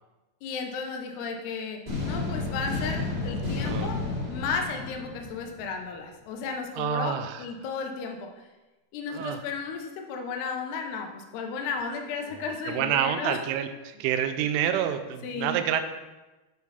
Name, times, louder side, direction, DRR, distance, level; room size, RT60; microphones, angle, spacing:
voice 1, 0.4-4.0 4.3-8.5 8.9-13.4 15.2-15.6, left 5 dB, 75° left, 4 dB, 2.7 m, -34 dB
sound 1, 1.9-5.8, left 3 dB, 20° right, 1.2 m, -31 dB
voice 2, 3.6-3.9 6.7-7.5 9.1-9.4 12.3-15.8, right 10 dB, 85° right, 8 dB, 3.0 m, -28 dB
11.5 x 4.7 x 5.6 m, 1.1 s
omnidirectional pair, 5.6 m